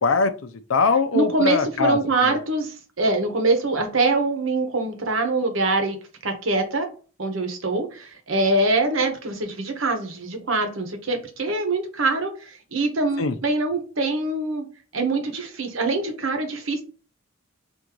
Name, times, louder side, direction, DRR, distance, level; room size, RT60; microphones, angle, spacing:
voice 1, 0.0-2.0 2.2-2.3 13.2-13.3, left 4 dB, 80° left, 0.6 m, -22 dB
voice 2, 1.1-6.0 6.2-6.9 7.2-14.7 14.9-16.8, right 2 dB, 75° right, 1.0 m, -24 dB
3.6 x 2.6 x 4.5 m
head